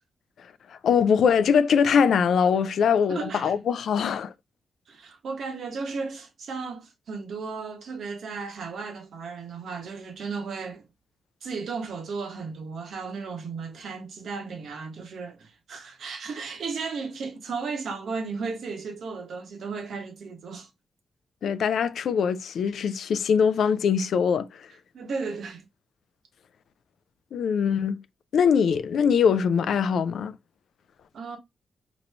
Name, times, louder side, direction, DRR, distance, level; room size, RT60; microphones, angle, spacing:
voice 1, 0.7-4.3 21.4-24.7 27.3-28.0 28.3-30.4, left 7 dB, 75° left, 0.3 m, -22 dB
voice 2, 3.1-3.5 4.9-10.8 11.4-20.7 24.9-25.7 31.1-31.4, right 4 dB, 70° right, 0.9 m, -35 dB
3.0 x 2.6 x 3.2 m
cardioid pair, 110°, 0 cm